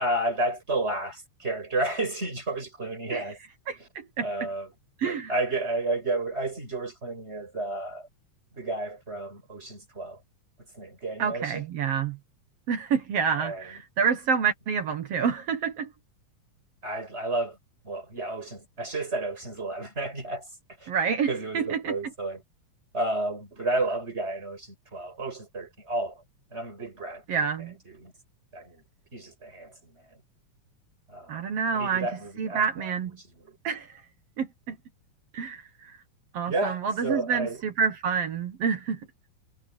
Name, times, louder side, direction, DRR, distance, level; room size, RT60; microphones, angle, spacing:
voice 1, 0.0-3.4 3.7-3.9 4.2-4.7 5.0-8.1 8.5-10.2 10.6-11.7 13.4-13.8 16.8-17.6 17.8-20.5 20.8-20.9 21.3-22.4 22.9-26.2 26.5-27.2 27.6-28.1 28.5-28.8 29.1-30.2 31.1-33.6 36.5-37.6, right 2 dB, 20° right, 5.8 m, -32 dB
voice 2, 3.7-4.3 5.0-5.3 11.2-12.2 12.7-15.9 20.9-21.9 27.3-27.8 31.3-32.1 32.4-33.2 33.6-33.9 34.4-34.8 35.3-35.9 36.3-39.1, right 6 dB, 60° right, 2.0 m, -28 dB
omnidirectional pair, 3.6 m